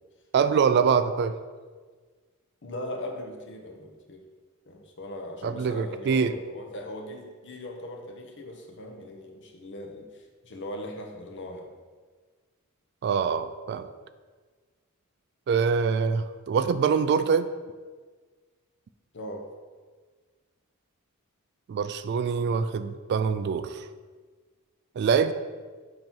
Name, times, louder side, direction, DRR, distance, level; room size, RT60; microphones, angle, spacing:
voice 1, 0.3-1.3 5.4-6.3 13.0-13.9 15.5-17.5 21.7-23.8 25.0-25.3, right 6 dB, 50° right, 12 dB, 0.3 m, -24 dB
voice 2, 2.6-4.2 4.7-11.7 19.1-19.5, left 1 dB, 55° left, 3 dB, 0.9 m, -39 dB
7.7 x 2.9 x 5.4 m, 1.4 s
head